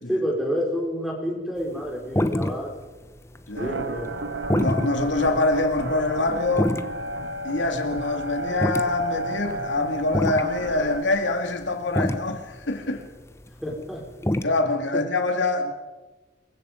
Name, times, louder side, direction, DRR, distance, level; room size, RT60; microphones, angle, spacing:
voice 1, 0.1-2.8 3.5-4.2 13.6-14.0 14.9-15.0, equal, ahead, 4.9 m, -28 dB
sound 1, 1.8-1.9 2.2-2.8 3.0-3.6 3.9-7.7 8.0-8.1 8.5-9.8 10.1-10.5 11.1-11.2 11.6-11.7 12.0-14.4, left 1 dB, 15° left, 0.8 m, -25 dB
voice 2, 3.5-3.8 4.6-6.7 7.4-13.0 14.4-15.7, left 2 dB, 85° left, 2.5 m, -25 dB
sound 2, 3.5-11.0, right 1 dB, 80° right, 1.7 m, -32 dB
26.0 x 23.0 x 5.3 m
head